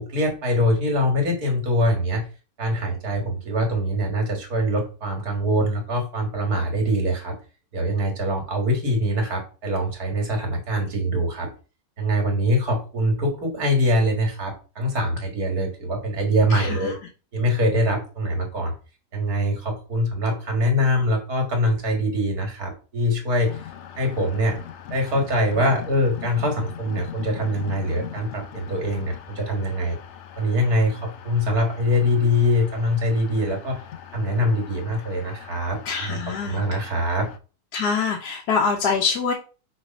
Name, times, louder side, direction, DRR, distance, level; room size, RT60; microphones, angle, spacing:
voice 1, 0.0-2.3 2.6-7.4 7.7-11.5 12.0-16.9 17.3-18.7 19.1-23.6 24.0-24.6 24.9-30.0 30.4-33.8 34.1-36.2 36.4-37.3, equal, 70° right, 2 dB, 2.4 m, -23 dB
voice 2, 16.5-16.9 35.9-36.6 37.7-39.3, left 5 dB, 80° left, 1 dB, 1.4 m, -24 dB
sound 1, 23.4-37.4, left 9 dB, 65° left, 0.7 m, -41 dB
5.8 x 3.3 x 5.3 m, 0.34 s
omnidirectional pair, 1.7 m